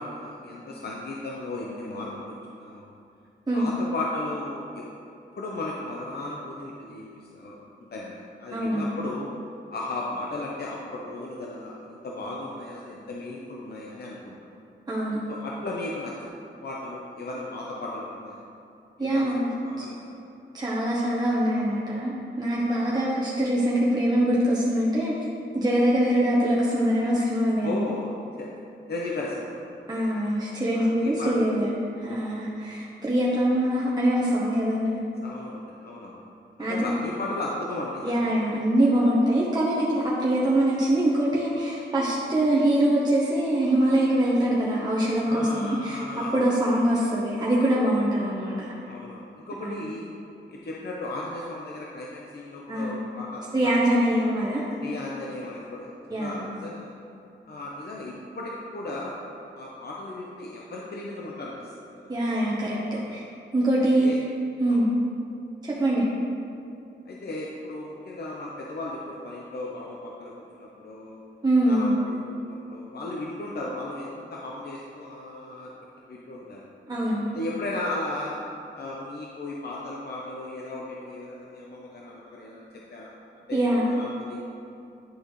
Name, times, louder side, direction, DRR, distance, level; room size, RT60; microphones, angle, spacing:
voice 1, 0.0-2.8 3.5-4.9 5.4-8.1 8.4-9.3 9.7-14.4 15.3-16.3 16.6-18.4 19.0-19.3 19.6-20.1 22.7-22.9 27.6-28.1 28.4-28.5 28.9-29.6 30.7-31.5 35.2-36.2 36.6-38.2 45.2-46.7 48.8-50.1 50.5-54.3 54.8-56.9 57.5-59.2 59.5-62.1 62.9-63.1 64.0-64.2 64.7-64.8 67.1-71.2 71.7-75.7 76.1-76.6 77.3-78.4 78.7-83.1 83.5-84.4, left 2 dB, 55° left, -3 dB, 0.7 m, -36 dB
voice 2, 8.5-9.0 14.9-15.2 19.0-19.5 19.8-19.9 20.5-25.1 25.5-27.8 29.9-35.0 36.6-36.9 38.0-46.0 46.3-48.7 49.6-49.8 52.7-53.0 53.5-54.6 56.1-56.5 62.1-62.8 63.1-63.2 63.5-64.2 64.6-64.9 65.6-66.1 71.4-71.9 76.9-77.4 83.5-83.9, right 1 dB, 20° right, -6 dB, 1.0 m, -23 dB
10.5 x 4.1 x 3.2 m, 2.6 s
cardioid pair, 65°, 20 cm